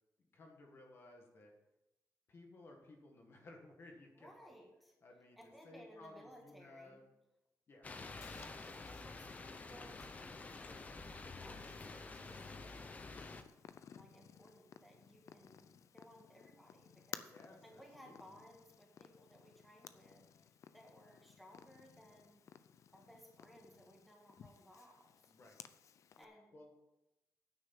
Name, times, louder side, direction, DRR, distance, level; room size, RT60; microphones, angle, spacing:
voice 1, 0.3-1.5 2.3-4.5 5.0-7.0 7.7-7.9 17.3-18.3 25.3-25.6 26.2-26.3 26.5-26.8, left 2 dB, 40° left, 1 dB, 1.7 m, -58 dB
voice 2, 4.2-4.9 5.4-7.1 8.0-12.9 13.9-17.3 17.6-20.2 20.7-22.5 22.9-25.3 26.2-26.6, equal, ahead, -1 dB, 1.8 m, -61 dB
sound 1, 7.8-13.4, left 3 dB, 25° left, 0.7 m, -49 dB
Purr, 8.2-26.2, left 8 dB, 55° left, 0.5 m, -58 dB
9.5 x 6.4 x 7.6 m, 0.95 s
wide cardioid pair, 175°, 6 cm